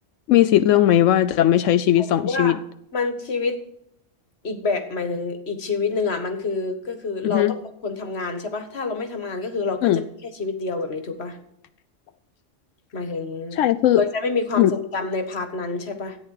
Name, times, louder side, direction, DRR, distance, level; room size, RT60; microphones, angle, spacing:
voice 1, 0.3-2.6 7.2-7.6 9.8-10.0 13.5-14.0 14.6-14.7, left 12 dB, 90° left, 11 dB, 1.0 m, -18 dB
voice 2, 2.0-2.6 2.9-3.6 4.4-11.4 12.9-13.6 14.0-16.2, left 4 dB, 60° left, 7 dB, 1.8 m, -27 dB
14.0 x 9.8 x 4.8 m, 0.75 s
omnidirectional pair, 1.3 m